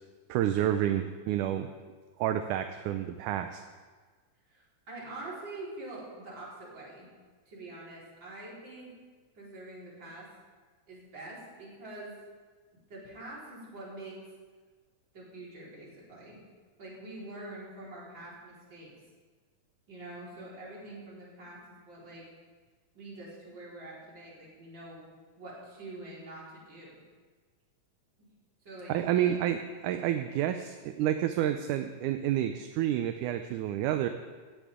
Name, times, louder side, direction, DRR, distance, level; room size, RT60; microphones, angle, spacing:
voice 1, 0.3-1.7 2.2-3.6 28.9-29.6 29.8-34.1, right 11 dB, 80° right, 8 dB, 2.0 m, -29 dB
voice 2, 4.5-7.1 7.5-9.0 9.3-10.3 10.9-12.1 12.9-14.2 15.1-16.4 16.8-18.9 19.9-22.2 22.9-25.0 25.4-27.0 28.6-29.4, right 2 dB, 35° right, -6 dB, 4.9 m, -45 dB
17.0 x 15.5 x 3.7 m, 1.4 s
omnidirectional pair, 3.8 m